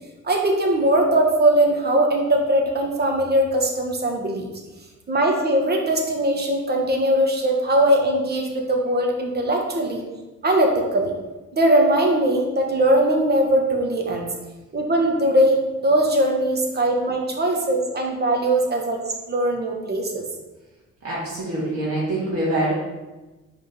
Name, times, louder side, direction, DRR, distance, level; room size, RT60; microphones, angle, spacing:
voice 1, 0.2-4.5 5.1-10.0 10.4-11.1 11.5-14.3 14.7-20.2, right 1 dB, 35° right, 1 dB, 1.3 m, -20 dB
voice 2, 21.0-22.7, right 1 dB, 50° right, -7 dB, 1.8 m, -25 dB
5.1 x 3.7 x 5.3 m, 1.1 s
cardioid pair, 90°, 30 cm